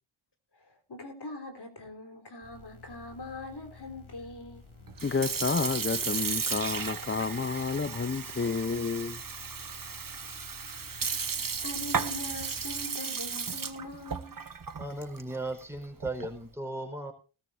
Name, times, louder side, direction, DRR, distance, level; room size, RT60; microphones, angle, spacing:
voice 1, 0.5-4.6 9.9-10.4 11.6-14.4, left 2 dB, 50° left, 3.8 m, -42 dB
sound 1, 2.4-12.8, left 5 dB, 75° left, 3.5 m, -52 dB
Sink (filling or washing) / Fill (with liquid), 4.9-16.4, right 6 dB, 40° right, 1.2 m, -35 dB
voice 2, 5.0-9.2, left 4 dB, 25° left, 0.7 m, -30 dB
voice 3, 14.8-17.1, right 2 dB, 5° right, 4.8 m, -36 dB
19.5 x 13.5 x 2.7 m
cardioid pair, 60°, 50 cm